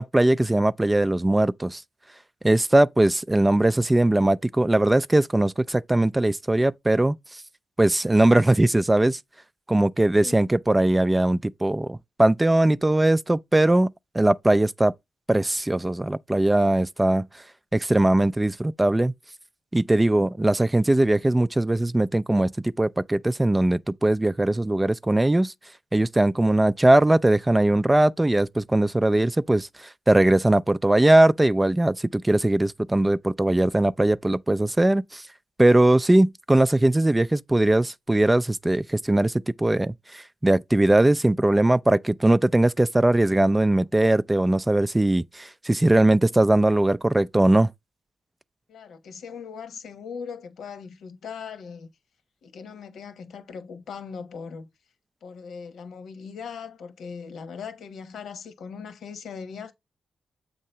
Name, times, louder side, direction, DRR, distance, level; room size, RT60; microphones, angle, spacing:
voice 1, 0.0-1.8 2.4-7.2 7.8-9.2 9.7-14.9 15.3-17.3 17.7-19.1 19.7-22.5 22.8-25.5 25.9-35.2 35.6-39.3 39.6-47.7, right 1 dB, 15° right, 0.3 m, -20 dB
voice 2, 48.7-51.9 52.4-54.7 55.2-59.7, left 6 dB, 85° left, 1.1 m, -39 dB
7.4 x 2.9 x 5.5 m
cardioid pair, 90°, 0 cm